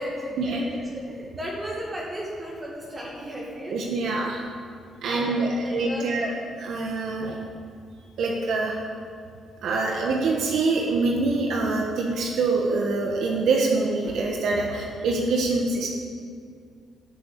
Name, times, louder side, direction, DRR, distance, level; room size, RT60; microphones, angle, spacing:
voice 1, 0.0-3.7 5.0-6.4 14.6-14.7, equal, 25° right, -4 dB, 2.4 m, -35 dB
voice 2, 3.7-4.4 5.0-6.3 6.6-7.4 8.2-8.9 9.6-15.9, right 3 dB, 70° right, -1 dB, 1.4 m, -25 dB
11.5 x 6.7 x 8.4 m, 2.2 s
cardioid pair, 90°, 0 cm